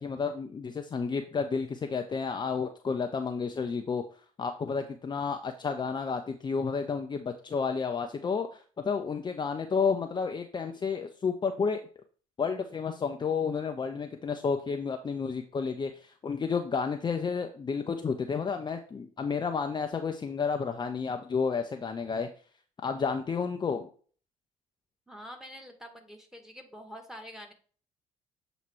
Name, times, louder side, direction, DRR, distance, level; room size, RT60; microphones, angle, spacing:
voice 1, 0.0-4.0 4.4-11.8 12.4-22.3 22.8-23.9, left 5 dB, 25° left, 5 dB, 0.6 m, -31 dB
voice 2, 25.1-27.5, equal, 5° right, 4 dB, 1.6 m, -46 dB
7.4 x 3.0 x 4.5 m, 0.42 s
figure-of-eight pair, 50°, 17 cm